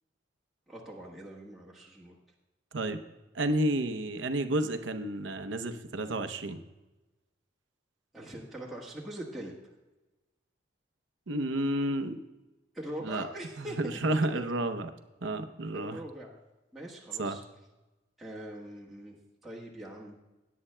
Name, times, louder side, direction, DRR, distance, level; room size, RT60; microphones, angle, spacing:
voice 1, 0.7-2.2 8.1-9.5 12.7-13.8 15.7-16.3 16.7-17.4 18.2-19.2 19.4-20.1, right 1 dB, ahead, -6 dB, 1.3 m, -42 dB
voice 2, 3.3-6.6 11.3-12.2 13.0-13.3 13.6-14.9 15.2-16.0 17.2-17.4, right 1 dB, 75° right, 9 dB, 0.7 m, -31 dB
17.0 x 9.4 x 2.2 m, 1.1 s
head